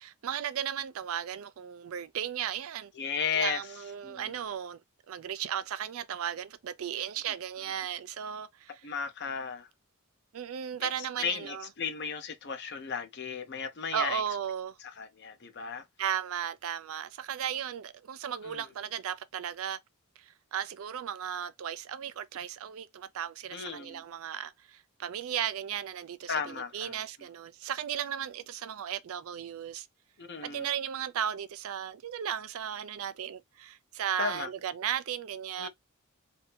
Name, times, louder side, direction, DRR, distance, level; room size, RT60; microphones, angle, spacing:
voice 1, 0.0-2.9 3.3-4.8 5.1-8.8 10.3-11.7 13.9-14.8 16.0-19.8 20.2-29.9 30.4-35.7, right 9 dB, 65° right, 0.4 m, -35 dB
voice 2, 2.9-3.6 4.0-4.4 8.8-9.7 11.2-14.2 15.0-15.8 18.4-18.6 23.5-24.0 26.3-27.0 30.2-30.7 34.2-34.5 35.6-35.7, left 6 dB, 50° left, 0.7 m, -34 dB
2.7 x 2.7 x 3.2 m
head